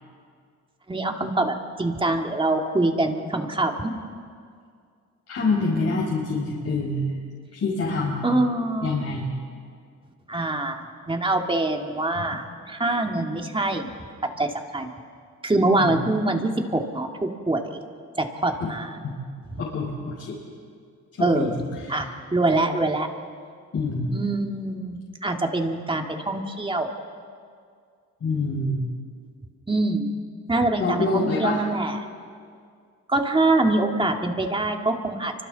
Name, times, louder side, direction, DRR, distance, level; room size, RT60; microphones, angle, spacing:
voice 1, 0.9-3.9 8.2-9.1 10.3-13.9 14.2-14.9 15.4-17.8 18.2-18.9 21.2-21.6 21.9-23.1 24.1-26.9 29.7-30.1 30.5-32.0 33.1-35.3, right 2 dB, 15° right, 3 dB, 2.3 m, -24 dB
voice 2, 5.3-7.1 7.5-8.3 8.8-9.3 15.8-15.9 18.6-18.7 19.0-19.1 19.7-20.4 21.2-21.9 23.7-24.1 28.2-28.9 30.8-31.6, left 3 dB, 55° left, -6 dB, 5.7 m, -26 dB
29.5 x 25.0 x 4.2 m, 2.2 s
cardioid pair, 90°, 30 cm